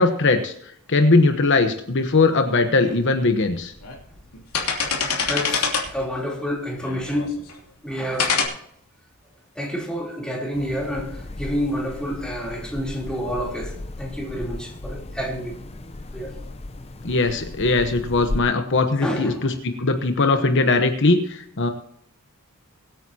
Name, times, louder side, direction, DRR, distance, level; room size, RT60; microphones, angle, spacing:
voice 1, 0.0-3.7 17.0-21.7, left 3 dB, 55° left, 1.1 m, -20 dB
sound 1, 2.9-3.0 3.6-4.0 4.3-6.1 6.8-7.5 8.2-8.5, left 5 dB, 90° left, 3.0 m, -24 dB
voice 2, 5.2-7.4 7.8-8.4 9.5-15.6 16.1-16.4 19.0-19.5, equal, 5° left, 3.3 m, -29 dB
sound 2, 10.5-18.4, left 2 dB, 30° left, 0.6 m, -35 dB
23.0 x 9.2 x 2.9 m
head